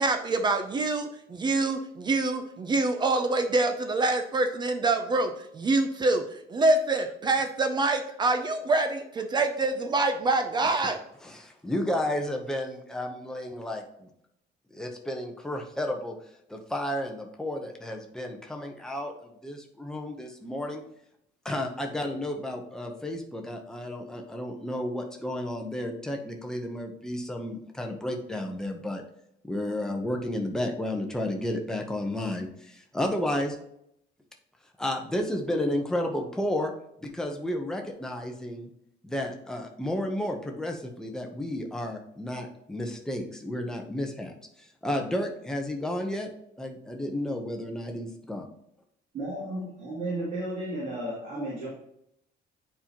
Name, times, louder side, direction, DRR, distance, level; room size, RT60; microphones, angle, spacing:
voice 1, 0.0-11.0, right 2 dB, 25° right, 7 dB, 0.5 m, -26 dB
voice 2, 11.2-14.1 14.7-16.2 16.5-20.8 21.4-29.0 29.5-33.6 34.8-36.7 37.0-38.7 39.0-46.3 46.6-48.5, left 1 dB, 5° left, 2 dB, 0.8 m, -32 dB
voice 3, 49.1-51.7, right 1 dB, 45° right, -7 dB, 2.4 m, -33 dB
9.3 x 4.4 x 2.9 m, 0.76 s
cardioid pair, 170°, 18 cm